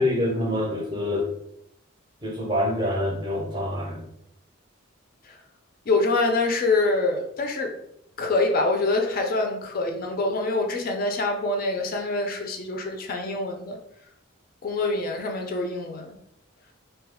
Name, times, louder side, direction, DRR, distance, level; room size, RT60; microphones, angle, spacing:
voice 1, 0.0-1.3 2.2-4.0, left 1 dB, 20° right, -1 dB, 0.6 m, -26 dB
voice 2, 5.9-7.7 8.2-13.8 14.6-16.2, left 2 dB, 45° left, 4 dB, 0.4 m, -25 dB
2.7 x 2.2 x 3.4 m, 0.75 s
head